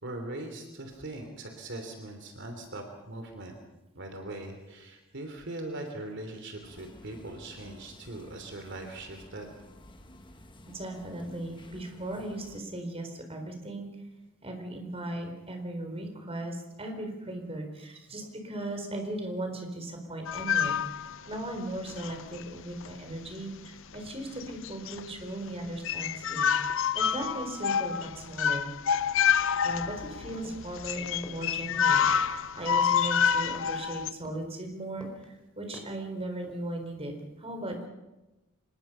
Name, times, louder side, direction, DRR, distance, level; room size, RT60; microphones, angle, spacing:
voice 1, 0.0-3.5 3.9-9.5, right 2 dB, 60° right, 5 dB, 3.1 m, -40 dB
sound 1, 6.6-12.6, left 1 dB, 25° left, 1.6 m, -52 dB
voice 2, 10.7-13.9 14.4-26.5 26.9-28.7 29.6-37.9, right 1 dB, 30° right, 4 dB, 4.3 m, -37 dB
sound 2, 20.3-21.4 21.9-22.4 22.8-22.9 23.9-24.1 24.4-25.2 25.5-25.6 25.8-34.1, left 7 dB, 65° left, 0.7 m, -28 dB
sound 3, 29.6-30.1 30.4-30.8 31.2-31.5 32.0-32.2 32.7-33.0 33.5-33.8 34.2-34.5 35.0-35.3 35.7-36.0 36.4-36.8, equal, 5° left, 4.7 m, -49 dB
25.5 x 21.5 x 5.7 m, 1.0 s
head